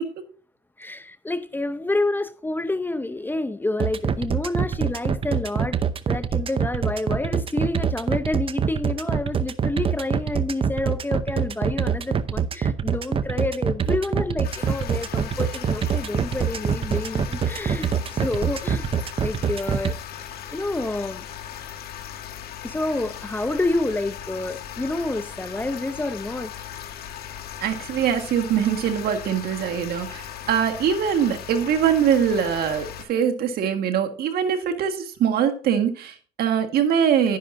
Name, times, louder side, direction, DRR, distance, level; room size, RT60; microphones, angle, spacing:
voice 1, 0.8-5.8 6.1-18.9 19.2-20.0 20.5-21.3 22.6-26.5, left 2 dB, 10° left, 0.6 m, -28 dB
sound 1, 3.8-19.9, right 7 dB, 35° right, 0.7 m, -24 dB
sound 2, 14.4-33.1, left 10 dB, 65° left, 1.6 m, -38 dB
voice 2, 27.6-37.4, right 8 dB, 65° right, 1.7 m, -23 dB
11.0 x 10.0 x 2.6 m
cardioid pair, 110°, 17 cm